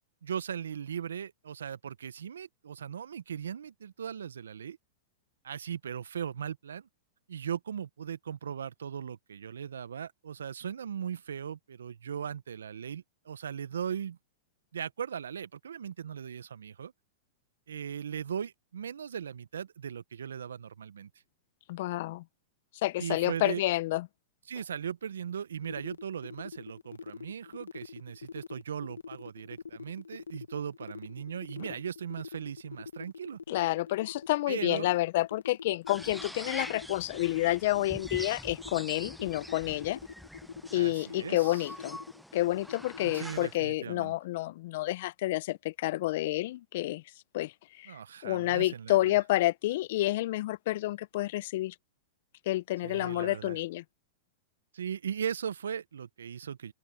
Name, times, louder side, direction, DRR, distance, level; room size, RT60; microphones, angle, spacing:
voice 1, 0.2-4.8 5.4-6.9 7.3-14.2 14.7-16.9 17.7-21.1 23.0-23.6 24.5-33.4 34.5-34.9 40.7-41.7 43.0-44.1 47.9-49.2 52.8-53.6 54.7-56.7, right 8 dB, 80° right, 1.1 m, -38 dB
voice 2, 21.7-22.2 22.8-24.1 33.5-40.0 40.7-42.0 42.3-47.0 47.3-47.5 47.8-47.9 48.2-51.7 52.5-53.8, left 17 dB, 60° left, 1.1 m, -29 dB
sound 1, 25.6-43.3, left 6 dB, 85° left, 1.6 m, -44 dB
sound 2, 35.9-43.6, equal, ahead, 0.9 m, -44 dB
open air
hypercardioid pair, 105°, 0 cm